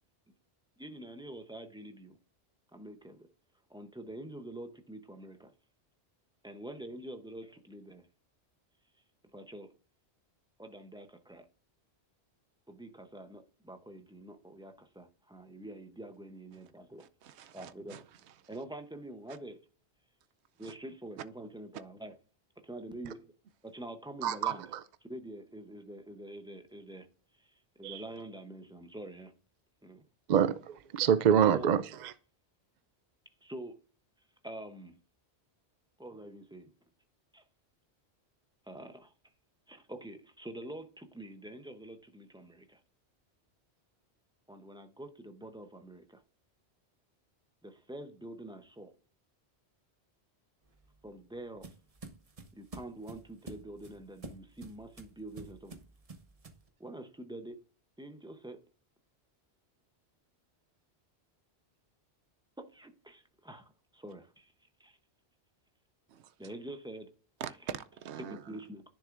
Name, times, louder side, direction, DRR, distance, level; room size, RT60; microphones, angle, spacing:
voice 1, 0.8-2.2 2.7-3.3 3.7-5.5 6.4-8.1 9.3-9.7 10.6-11.5 12.7-17.1 17.5-18.0 18.5-19.6 20.6-22.1 22.6-23.3 23.6-24.6 25.1-27.1 27.4-29.3 29.8-30.0 31.5-31.7 33.4-33.8 34.4-35.0 36.0-36.7 37.3-37.4 38.7-39.1 39.7-42.8 44.5-46.2 47.6-48.9 51.0-51.7 52.5-55.7 56.8-57.6 58.0-58.6 62.6-64.5 64.8-65.0 66.4-67.1 68.2-68.8, right 1 dB, 5° right, 0.6 m, -46 dB
voice 2, 17.0-18.0 20.6-20.7 66.1-66.6 67.4-68.4, right 9 dB, 85° right, 0.9 m, -44 dB
voice 3, 24.2-24.8 27.8-28.0 30.3-32.1, right 8 dB, 55° right, 0.5 m, -26 dB
sound 1, 50.7-56.7, right 3 dB, 35° right, 0.9 m, -49 dB
10.5 x 6.4 x 2.5 m
omnidirectional pair, 1.1 m